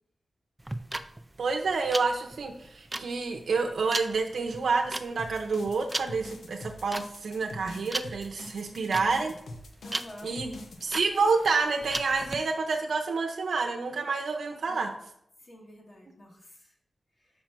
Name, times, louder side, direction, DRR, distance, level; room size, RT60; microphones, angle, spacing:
sound 1, 0.6-12.4, right 1 dB, 15° right, 0.4 m, -37 dB
voice 1, 1.4-9.3 10.2-14.9, right 4 dB, 85° right, 2 dB, 0.7 m, -28 dB
sound 2, 5.2-10.8, left 1 dB, 85° left, 0.8 m, -44 dB
voice 2, 9.8-10.4 14.7-14.9 15.4-16.7, left 1 dB, 45° left, 0 dB, 1.9 m, -48 dB
6.0 x 4.4 x 5.9 m, 0.74 s
wide cardioid pair, 120°, 0 cm